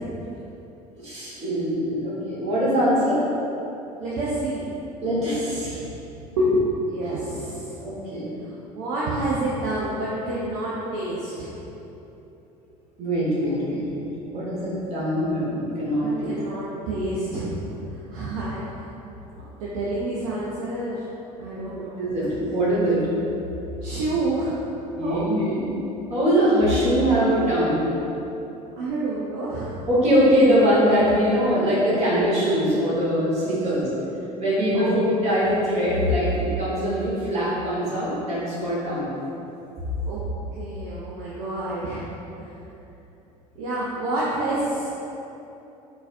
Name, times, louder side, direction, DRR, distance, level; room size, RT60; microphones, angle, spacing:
voice 1, 1.0-3.2 5.0-5.8 7.8-8.4 13.0-14.1 14.3-16.4 22.0-23.0 24.9-25.6 26.1-27.8 29.8-33.8 34.4-39.1, equal, 30° right, -9 dB, 1.4 m, -22 dB
voice 2, 4.0-4.7 6.4-7.8 8.4-11.5 13.5-13.6 16.0-17.5 17.9-18.9 19.6-21.0 21.4-22.3 23.8-24.6 25.0-25.2 28.8-29.8 34.7-35.0 40.1-40.2 40.5-42.0 42.4-42.5 43.6-45.0, right 1 dB, 60° right, -7 dB, 0.5 m, -28 dB
3.8 x 2.6 x 2.5 m, 3.0 s
figure-of-eight pair, 65°, 20 cm